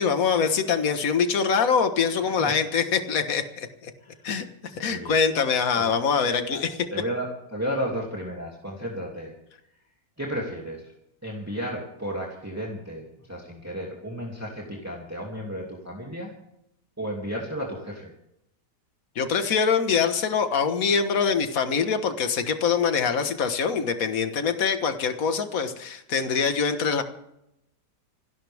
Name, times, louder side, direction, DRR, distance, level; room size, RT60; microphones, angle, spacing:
voice 1, 0.0-3.9 4.2-4.4 4.8-6.7 19.2-27.0, left 6 dB, 55° left, 8 dB, 1.8 m, -24 dB
voice 2, 4.9-5.2 5.7-5.9 6.3-6.6 6.9-9.3 10.2-10.9 11.2-16.3 17.0-18.1, equal, 10° right, -2 dB, 2.6 m, -33 dB
27.5 x 12.5 x 3.5 m, 0.80 s
omnidirectional pair, 1.9 m